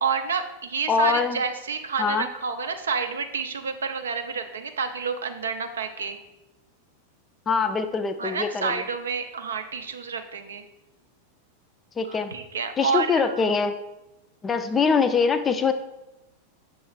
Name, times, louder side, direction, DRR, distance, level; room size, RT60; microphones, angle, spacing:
voice 1, 0.0-6.2 8.2-10.6 12.1-13.4, right 5 dB, 70° right, 8 dB, 0.4 m, -29 dB
voice 2, 0.9-1.4 2.0-2.3 7.5-8.8 12.0-12.3 12.8-13.7 14.4-15.7, left 5 dB, 20° left, 10 dB, 0.4 m, -23 dB
6.5 x 3.1 x 4.7 m, 0.96 s
figure-of-eight pair, 90°, 0 cm